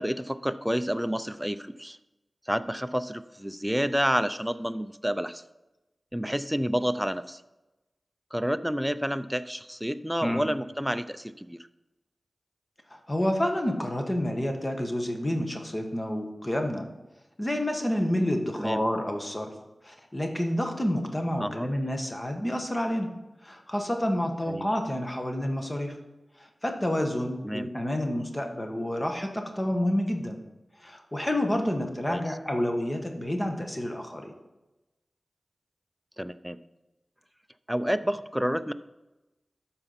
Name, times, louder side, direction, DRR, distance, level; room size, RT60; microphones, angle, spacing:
voice 1, 0.0-2.0 2.5-5.4 6.1-7.4 8.3-11.6 18.6-18.8 21.4-21.7 24.5-24.7 27.4-27.7 32.1-32.2 36.2-36.6 37.7-38.7, equal, 5° right, 12 dB, 0.5 m, -29 dB
voice 2, 12.9-16.8 17.4-19.5 19.8-23.1 23.4-25.9 26.4-30.4 30.8-34.3, left 1 dB, 25° left, 3 dB, 1.4 m, -29 dB
12.5 x 4.6 x 5.7 m, 1.0 s
cardioid pair, 50°, 0 cm